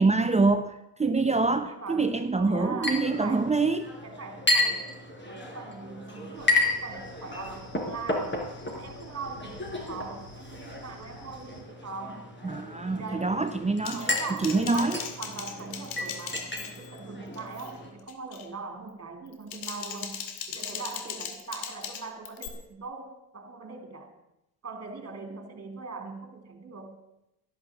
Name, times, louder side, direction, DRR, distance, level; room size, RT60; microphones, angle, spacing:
voice 1, 0.0-3.8 12.4-14.1 14.4-15.0, right 3 dB, 15° right, 8 dB, 0.9 m, -25 dB
voice 2, 1.2-3.5 4.0-8.4 8.7-12.3 12.8-13.4 13.9-24.1 24.6-27.0, right 4 dB, 30° right, 5 dB, 3.7 m, -41 dB
Chink clink, 2.8-17.9, left 2 dB, 20° left, 4.5 m, -33 dB
sound 1, 6.3-11.6, left 2 dB, 85° left, 4.5 m, -51 dB
Typing, 13.8-17.0 17.3-17.7 18.1-18.5 19.3-22.5, left 8 dB, 65° left, 2.3 m, -39 dB
12.5 x 11.5 x 7.4 m, 0.87 s
hypercardioid pair, 75°, 49 cm